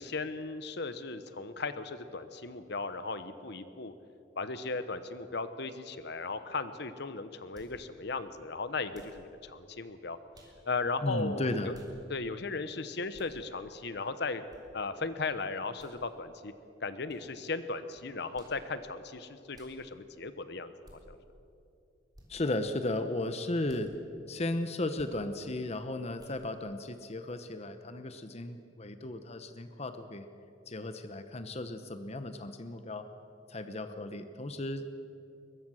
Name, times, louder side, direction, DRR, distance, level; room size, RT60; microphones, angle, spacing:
voice 1, 0.0-3.9 4.4-10.2 10.7-11.7 12.1-14.4 14.7-16.5 16.8-20.7 21.1-21.2, left 3 dB, 60° left, 12 dB, 1.0 m, -36 dB
sound 1, 7.5-7.8 8.9-9.2 10.3-10.6 11.7-11.9 13.1-13.4 14.5-14.6 15.8-16.0 17.1-17.2 18.3-18.6 19.5-19.8 20.8-21.0 22.1-22.3 23.6-23.9 25.0-25.2 26.2-26.4, right 1 dB, 20° right, 3.8 m, -56 dB
voice 2, 11.0-11.8 22.3-23.9 24.3-30.3 30.7-33.0 33.5-34.9, left 2 dB, 35° left, 9 dB, 0.9 m, -35 dB
22.0 x 21.5 x 6.4 m, 2.7 s
head